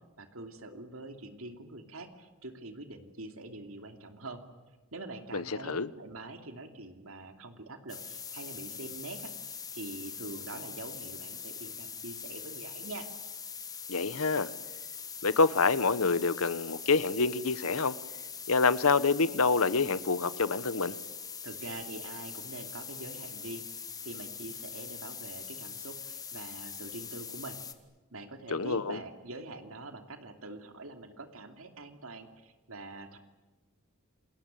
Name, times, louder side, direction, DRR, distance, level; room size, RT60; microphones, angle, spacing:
voice 1, 0.2-4.4 4.9-9.3 9.7-13.1 21.4-27.6 28.1-33.2, right 2 dB, 70° right, 2.8 m, -44 dB
voice 2, 5.3-5.9 13.9-14.5 15.2-18.0 18.5-21.0 28.5-29.0, left 4 dB, 75° left, 1.1 m, -27 dB
sound 1, 7.9-27.7, left 6 dB, 15° left, 1.6 m, -42 dB
28.5 x 21.5 x 9.0 m
head